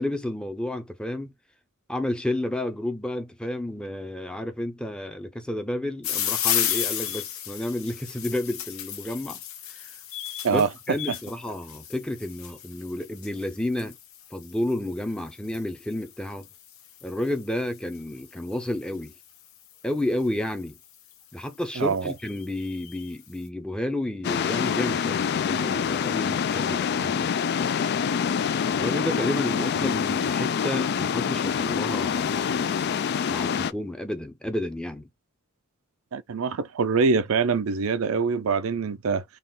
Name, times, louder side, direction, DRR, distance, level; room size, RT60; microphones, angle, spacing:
voice 1, 0.0-1.3 1.9-9.4 9.7-9.9 10.5-13.9 14.3-16.5 17.0-19.1 19.8-20.8 21.3-27.3 28.7-32.7 33.3-35.1, left 1 dB, 5° left, 0.6 m, -31 dB
sound 1, 6.0-19.2 20.1-20.5 21.1-21.2 21.4-21.5 21.8-23.1, left 10 dB, 70° left, 0.9 m, -34 dB
voice 2, 21.8-22.1 29.6-29.7 36.1-39.2, right 5 dB, 75° right, 0.5 m, -24 dB
sound 2, 24.2-33.7, left 7 dB, 50° left, 0.3 m, -26 dB
4.1 x 2.4 x 3.6 m
head